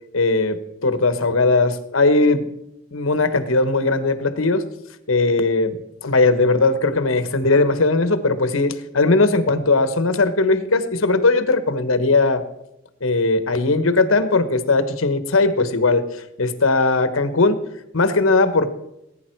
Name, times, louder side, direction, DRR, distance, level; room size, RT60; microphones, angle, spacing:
voice 1, 0.1-2.5 2.9-4.6 5.1-12.4 13.0-16.1 16.4-17.6 17.9-18.7, left 3 dB, 90° left, 10 dB, 1.2 m, -19 dB
19.5 x 10.0 x 4.6 m, 0.86 s
head